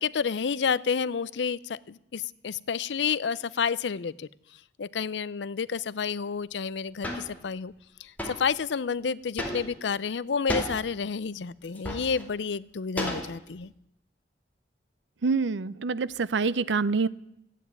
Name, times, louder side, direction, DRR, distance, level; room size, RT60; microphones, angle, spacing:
voice 1, 0.0-4.3 4.8-7.7 8.0-13.7, left 6 dB, 75° left, 19 dB, 0.5 m, -30 dB
sound 1, 7.0-7.3 8.2-8.5 9.4-9.9 10.5-10.8 11.6-12.2 13.0-13.6, left 1 dB, 10° left, 2.6 m, -33 dB
voice 2, 15.2-17.1, right 4 dB, 90° right, 18 dB, 0.6 m, -26 dB
14.0 x 9.2 x 9.4 m, 0.78 s
head